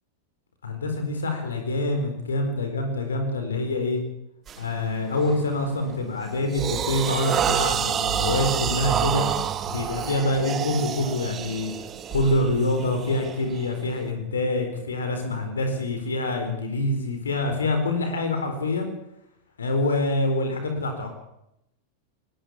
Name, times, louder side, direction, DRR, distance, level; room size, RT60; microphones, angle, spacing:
voice 1, 0.6-4.0 4.6-9.3 9.7-11.7 12.1-18.9 19.6-21.1, left 2 dB, 70° left, 6 dB, 4.4 m, -26 dB
sound 1, 4.5-4.7 5.2-5.5 5.9-14.0, right 8 dB, 25° right, 1.6 m, -28 dB
20.5 x 19.0 x 8.8 m, 0.81 s
figure-of-eight pair, 90°, 0 cm